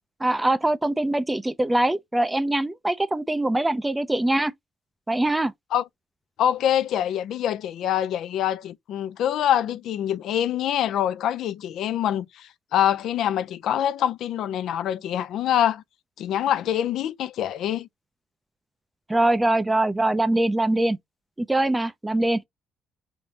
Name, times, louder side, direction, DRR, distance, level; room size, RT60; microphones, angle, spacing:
voice 1, 0.2-4.5 5.1-5.5 19.1-21.0 21.4-22.4, right 1 dB, 10° right, 0.4 m, -23 dB
voice 2, 6.4-15.8 16.2-17.9, left 10 dB, 60° left, 0.4 m, -25 dB
4.9 x 3.5 x 2.7 m
cardioid pair, 165°, 0 cm